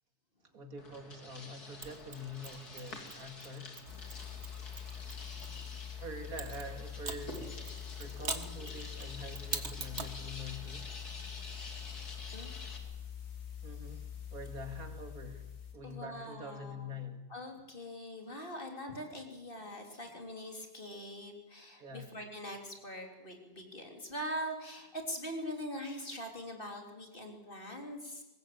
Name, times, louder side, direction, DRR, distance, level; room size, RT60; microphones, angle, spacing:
voice 1, 0.5-3.7 6.0-7.5 8.0-10.9 13.6-14.0 14.3-15.5 15.7-17.3 21.8-22.1, left 1 dB, 70° right, 6 dB, 2.8 m, -45 dB
sound 1, 0.8-12.8, left 2 dB, 90° left, 3.5 m, -49 dB
Mechanisms, 1.8-5.7 6.4-10.2, right 4 dB, 45° right, 2.0 m, -44 dB
sound 2, 3.9-15.7, left 9 dB, 60° left, 3.2 m, -45 dB
voice 2, 12.3-12.9 15.8-16.9 17.3-28.2, equal, 35° left, 3 dB, 3.5 m, -43 dB
23.0 x 19.5 x 8.6 m, 1.0 s
omnidirectional pair, 1.6 m